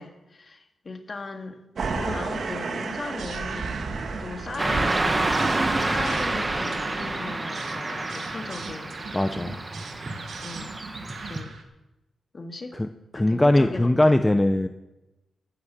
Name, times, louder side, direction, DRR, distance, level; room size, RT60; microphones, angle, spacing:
voice 1, 0.0-1.6 1.9-5.0 5.7-9.5 10.4-10.8 11.2-11.6 12.3-12.8 13.1-14.2, left 3 dB, 35° left, 6 dB, 1.8 m, -38 dB
sound 1, 1.7-7.2, right 4 dB, 60° right, 1.7 m, -33 dB
sound 2, 2.9-11.6, right 4 dB, 85° right, 2.2 m, -42 dB
Car passing by / Traffic noise roadway noise, 4.6-11.4, right 2 dB, 25° right, 1.5 m, -28 dB
voice 2, 9.1-9.6 12.7-14.7, left 1 dB, 10° left, 8 dB, 0.6 m, -21 dB
15.5 x 11.5 x 7.3 m, 1.0 s
wide cardioid pair, 120°, 0 cm